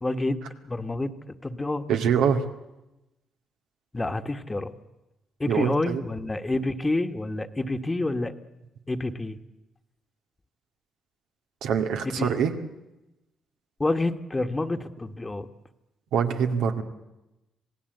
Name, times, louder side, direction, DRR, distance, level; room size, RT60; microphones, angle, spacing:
voice 1, 0.0-1.1 1.4-1.8 3.9-4.7 5.4-8.3 8.9-9.4 12.0-12.3 13.8-15.5, left 2 dB, 20° left, 8 dB, 1.4 m, -28 dB
voice 2, 1.9-2.4 5.5-6.0 11.6-12.5 16.1-16.8, right 7 dB, 90° right, 4 dB, 2.1 m, -24 dB
27.0 x 18.0 x 7.9 m, 0.96 s
cardioid pair, 90°, 0 cm